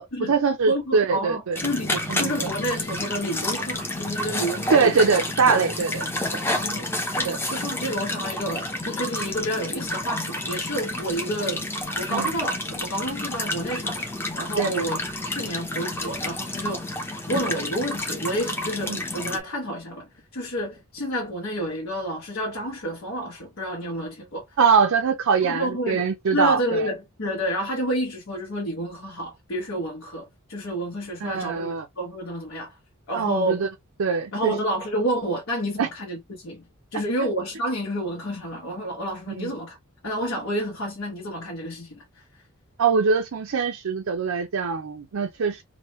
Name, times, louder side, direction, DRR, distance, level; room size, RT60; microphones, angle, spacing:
voice 1, 0.0-1.6 2.1-2.5 4.7-6.1 7.2-7.4 12.1-12.3 14.6-14.9 18.9-19.0 24.6-26.9 31.2-31.9 33.1-33.7 34.0-34.5 35.8-35.9 39.4-39.5 42.8-45.6, right 5 dB, 70° right, 0.5 m, -23 dB
voice 2, 0.7-5.0 6.5-11.6 12.0-14.1 14.3-15.0 15.3-16.9 17.3-24.4 25.4-26.0 26.3-32.7 33.1-33.6 34.3-36.6 36.9-39.8 40.0-42.2, equal, 65° left, 1.0 m, -29 dB
sound 1, 1.6-19.4, left 1 dB, 10° left, 0.7 m, -30 dB
3.1 x 2.1 x 3.0 m
head